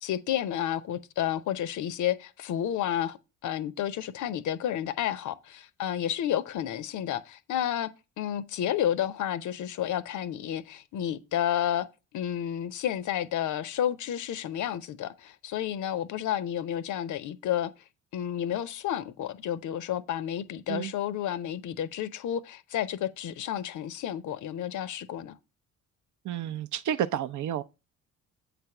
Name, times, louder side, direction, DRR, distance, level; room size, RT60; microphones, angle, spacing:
voice 1, 0.0-7.9 8.2-11.9 12.1-17.7 18.1-25.4, left 10 dB, 50° left, 0.7 m, -31 dB
voice 2, 26.2-27.6, right 10 dB, 50° right, 0.6 m, -30 dB
7.9 x 3.3 x 5.9 m
hypercardioid pair, 50°, 38 cm